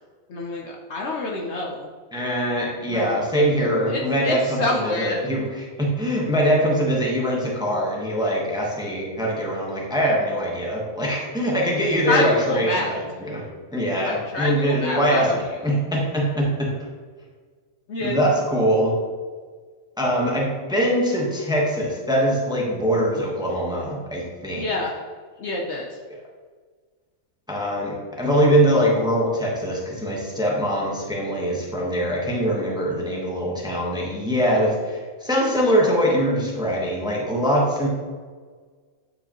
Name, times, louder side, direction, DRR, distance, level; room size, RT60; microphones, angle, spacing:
voice 1, 0.3-1.9 2.9-3.2 3.9-5.2 12.1-12.9 13.9-15.3 17.9-18.3 24.5-24.9 25.4-26.0, left 2 dB, 60° left, -1 dB, 0.9 m, -27 dB
voice 2, 2.1-16.7 18.0-18.9 20.0-24.7 27.5-37.9, equal, 5° right, -3 dB, 1.0 m, -23 dB
9.0 x 4.8 x 2.9 m, 1.5 s
omnidirectional pair, 1.5 m